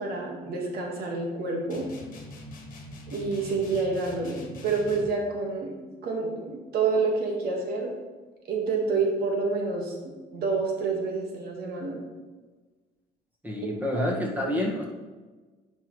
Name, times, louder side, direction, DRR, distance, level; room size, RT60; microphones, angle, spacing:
voice 1, 0.0-1.9 3.1-5.7 6.0-7.9 8.4-12.0 13.9-14.0, right 4 dB, 65° right, 0 dB, 1.8 m, -28 dB
sound 1, 1.7-5.2, left 1 dB, 50° left, 1.4 m, -43 dB
voice 2, 13.4-14.9, left 1 dB, 10° right, -2 dB, 1.7 m, -28 dB
10.0 x 5.3 x 3.2 m, 1.3 s
cardioid pair, 110°, 17 cm